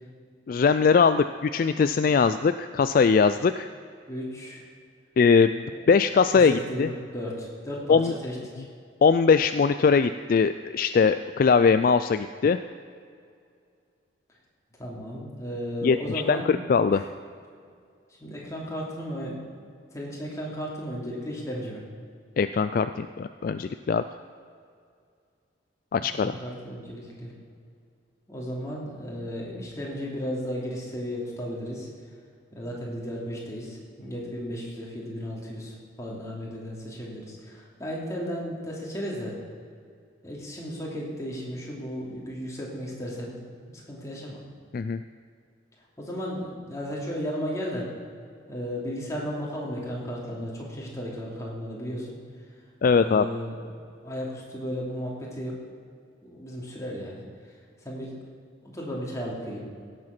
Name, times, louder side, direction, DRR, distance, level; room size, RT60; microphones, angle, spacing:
voice 1, 0.5-3.7 5.2-5.6 5.9-6.9 7.9-8.1 9.0-12.6 15.8-16.0 16.3-17.0 22.4-24.0 25.9-26.4 44.7-45.0 52.8-53.3, left 5 dB, 50° left, 11 dB, 0.3 m, -21 dB
voice 2, 4.1-4.6 5.7-5.8 6.3-8.6 14.8-16.5 16.9-17.0 18.2-19.4 19.9-21.8 25.9-27.3 28.3-31.9 32.5-39.3 40.2-44.4 46.0-47.9 48.5-52.2 52.9-53.6 54.0-55.6 56.2-57.2 57.8-58.1 58.6-59.6, equal, 15° left, -4 dB, 2.8 m, -34 dB
16.5 x 7.7 x 6.0 m, 2.2 s
head